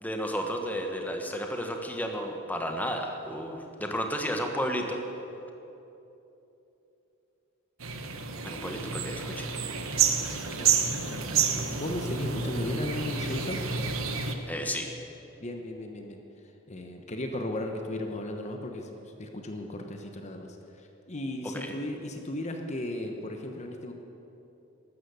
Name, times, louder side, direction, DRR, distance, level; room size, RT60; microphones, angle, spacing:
voice 1, 0.0-5.0 8.4-9.5 14.5-14.9 21.4-21.7, equal, 10° left, 3 dB, 1.2 m, -32 dB
sound 1, 7.8-14.3, right 6 dB, 80° right, 1.2 m, -29 dB
voice 2, 11.0-13.6 15.4-16.2 16.7-18.9 19.2-20.5 21.1-23.9, left 1 dB, 35° left, 4 dB, 1.0 m, -35 dB
13.0 x 12.5 x 8.1 m, 2.9 s
head